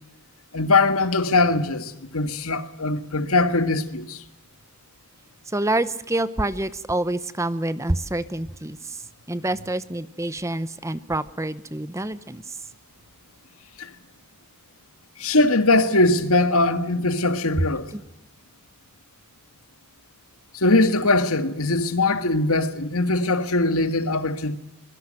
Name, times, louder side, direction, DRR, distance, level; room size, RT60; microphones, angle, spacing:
voice 1, 0.5-4.2 13.8-13.9 15.2-17.9 20.5-24.6, left 2 dB, 75° left, 1.9 m, -21 dB
voice 2, 5.5-9.0 9.3-12.6 17.6-17.7 17.9-18.0, right 1 dB, 15° right, 0.8 m, -27 dB
24.5 x 22.5 x 7.7 m
head